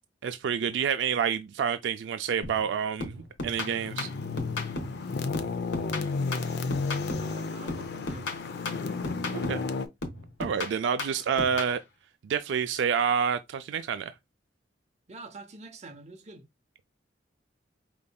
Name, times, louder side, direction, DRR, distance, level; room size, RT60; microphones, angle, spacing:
voice 1, 0.2-4.1 9.3-9.6 10.4-11.8 12.2-14.1, right 7 dB, 70° right, 0.3 m, -28 dB
sound 1, 2.4-2.7 3.0-5.0 5.3-7.4 7.7-9.7 10.0-11.8, left 2 dB, 80° left, 1.1 m, -36 dB
sound 2, 3.5-9.9, left 4 dB, 60° left, 0.5 m, -32 dB
voice 2, 7.1-8.3 15.1-16.4, right 3 dB, 35° right, 0.7 m, -46 dB
5.2 x 3.0 x 2.2 m
head